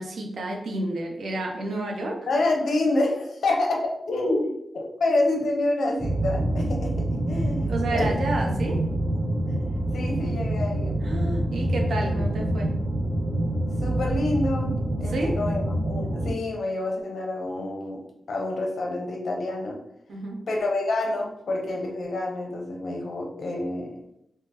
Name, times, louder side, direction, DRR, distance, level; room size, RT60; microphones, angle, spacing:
voice 1, 0.0-2.3 7.7-8.8 11.0-12.8 15.1-15.3 20.1-20.4, right 1 dB, 80° right, 1 dB, 0.7 m, -30 dB
voice 2, 2.3-8.1 8.6-8.8 9.5-11.0 12.0-12.3 13.8-14.7 15.0-19.8 20.5-24.0, left 2 dB, 80° left, 1 dB, 0.7 m, -28 dB
sound 1, 6.0-16.3, right 1 dB, 30° right, 0.8 m, -26 dB
3.7 x 2.1 x 2.8 m, 0.80 s
wide cardioid pair, 130°, 0 cm